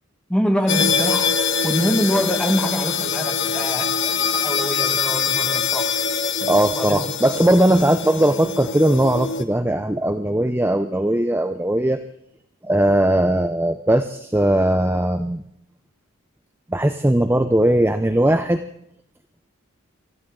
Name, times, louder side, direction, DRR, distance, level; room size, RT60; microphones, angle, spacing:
voice 1, 0.3-1.3 1.6-6.0 6.7-7.1 7.7-7.8, equal, 5° left, 3 dB, 1.7 m, -24 dB
sound 1, 0.7-9.4, left 6 dB, 60° left, 1.3 m, -23 dB
voice 2, 6.4-12.0 12.6-15.4 16.7-18.6, right 1 dB, 10° right, 8 dB, 0.6 m, -19 dB
25.5 x 14.5 x 3.8 m, 0.72 s
head